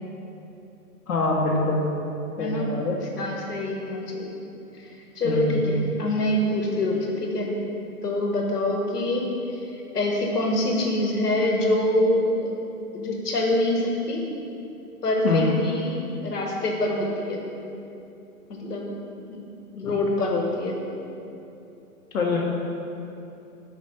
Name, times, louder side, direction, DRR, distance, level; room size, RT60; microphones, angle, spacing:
voice 1, 1.1-1.8 2.4-3.0 5.2-5.8 15.2-15.5 19.8-19.9 22.1-22.4, left 2 dB, 65° left, -3 dB, 1.1 m, -24 dB
voice 2, 2.4-2.7 3.2-4.3 5.2-7.5 8.0-9.2 9.9-12.5 12.9-14.2 15.0-17.4 18.5-18.9 19.3-19.4 19.7-20.8, left 1 dB, 85° left, 1 dB, 1.4 m, -25 dB
5.3 x 5.2 x 5.4 m, 2.8 s
hypercardioid pair, 155°, 46 cm